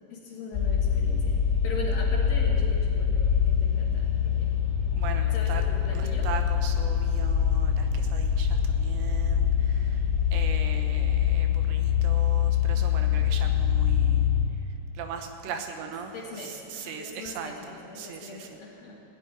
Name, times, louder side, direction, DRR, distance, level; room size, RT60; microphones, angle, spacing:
voice 1, 0.1-4.5 5.3-6.3 15.5-19.0, left 2 dB, 60° left, -2 dB, 1.7 m, -41 dB
sound 1, 0.5-14.5, left 8 dB, 35° left, 2.2 m, -24 dB
voice 2, 5.0-5.6 5.9-14.3 14.9-18.5, right 6 dB, 80° right, 5 dB, 3.3 m, -39 dB
16.5 x 8.1 x 9.8 m, 2.8 s
omnidirectional pair, 5.1 m